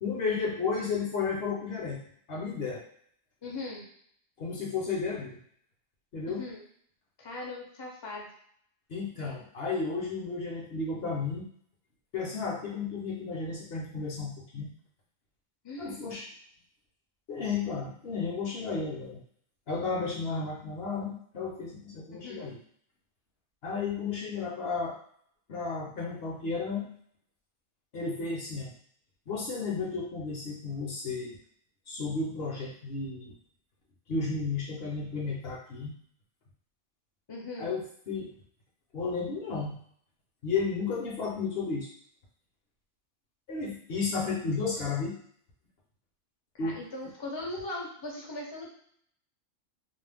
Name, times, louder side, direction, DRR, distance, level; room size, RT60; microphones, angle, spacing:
voice 1, 0.0-2.0 2.3-2.8 4.4-5.4 6.1-6.4 8.9-11.5 12.1-14.7 15.8-16.3 17.3-19.2 19.7-22.6 23.6-25.0 25.5-26.9 27.9-28.7 29.3-31.4 31.9-33.3 34.1-35.9 37.6-38.3 38.9-39.8 40.4-41.9 43.5-45.2 46.6-46.8, left 4 dB, 55° left, -3 dB, 0.9 m, -33 dB
voice 2, 3.4-3.8 6.3-6.6 7.2-8.3 15.6-16.0 22.1-22.4 37.3-37.7 46.5-48.7, left 2 dB, 30° left, -3 dB, 0.5 m, -39 dB
2.5 x 2.0 x 3.4 m, 0.62 s
omnidirectional pair, 1.3 m